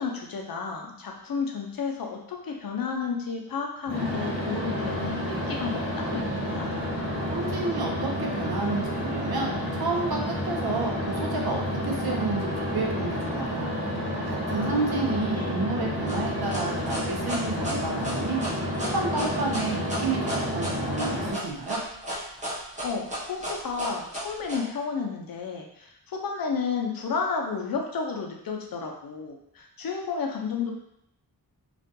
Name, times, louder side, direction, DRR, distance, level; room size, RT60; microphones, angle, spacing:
voice 1, 0.0-6.7 14.5-15.7 22.8-30.7, left 5 dB, 60° left, 1 dB, 0.5 m, -32 dB
sound 1, 3.8-21.3, equal, 20° left, 1.2 m, -30 dB
voice 2, 7.3-13.7 14.2-18.4 18.9-21.8, right 3 dB, 65° right, 0 dB, 0.6 m, -30 dB
sound 2, 16.1-24.6, equal, 20° right, 0.8 m, -33 dB
2.4 x 2.2 x 2.6 m, 0.76 s
wide cardioid pair, 80°, 41 cm